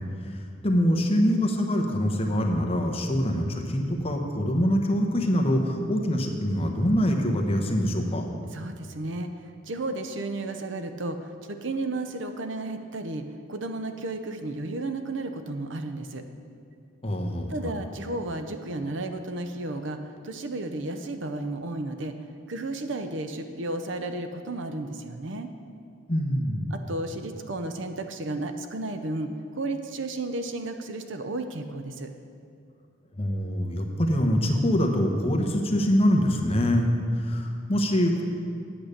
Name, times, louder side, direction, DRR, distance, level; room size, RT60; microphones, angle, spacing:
voice 1, 0.6-8.2 17.0-17.7 26.1-26.7 33.2-36.9 37.3-38.2, equal, 30° left, 2 dB, 1.0 m, -24 dB
voice 2, 8.5-9.3 9.7-13.2 13.5-16.2 17.5-20.0 20.2-22.1 22.5-25.5 26.7-32.1, right 2 dB, 65° right, 7 dB, 0.7 m, -33 dB
8.8 x 8.7 x 6.6 m, 2.4 s
head